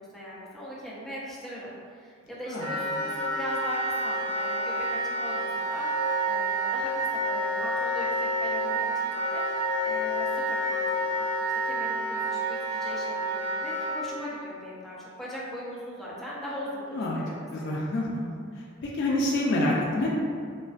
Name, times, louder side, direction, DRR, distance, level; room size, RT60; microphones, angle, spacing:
voice 1, 0.0-8.9 9.1-11.3 11.6-13.1 13.4-17.8, equal, ahead, -7 dB, 0.4 m, -40 dB
voice 2, 2.5-2.8 16.9-17.2 17.5-18.3 18.8-20.2, left 1 dB, 60° left, -4 dB, 0.3 m, -27 dB
Wind instrument woodwind instrument, 2.6-14.0, right 1 dB, 65° right, 0.9 m, -29 dB
2.4 x 2.2 x 2.3 m, 2.1 s
head